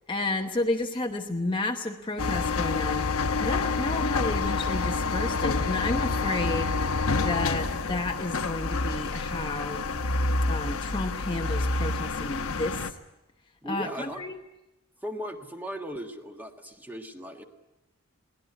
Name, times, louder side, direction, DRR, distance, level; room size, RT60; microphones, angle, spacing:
voice 1, 0.1-3.1 3.4-6.8 7.1-9.8 10.5-13.0 13.7-14.4, left 2 dB, 20° left, 3 dB, 1.0 m, -31 dB
sound 1, 2.2-12.9, left 3 dB, 70° left, 1.1 m, -28 dB
voice 2, 13.6-14.2 15.0-17.4, equal, 10° right, 4 dB, 1.6 m, -37 dB
22.0 x 18.0 x 9.6 m, 0.97 s
head